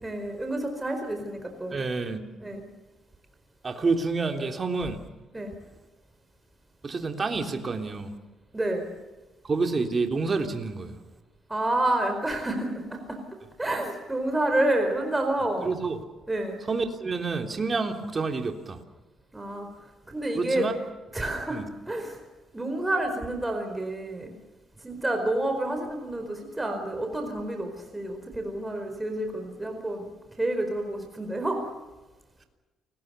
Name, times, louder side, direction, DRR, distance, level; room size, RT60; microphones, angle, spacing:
voice 1, 0.0-1.8 2.4-2.6 5.3-5.5 8.5-8.9 11.5-13.2 13.6-15.7 16.3-16.6 19.3-19.7 20.1-20.7 21.1-21.6 21.9-22.2 22.5-24.3 24.8-30.1 30.4-31.7, right 1 dB, 15° right, 4 dB, 4.5 m, -29 dB
voice 2, 1.7-2.2 3.6-5.0 6.8-8.1 9.4-10.9 15.6-16.0 16.7-18.8 20.3-20.7 21.5-21.6, right 4 dB, 35° right, 5 dB, 3.4 m, -28 dB
28.5 x 20.5 x 6.9 m, 1.2 s
cardioid pair, 90°, 0 cm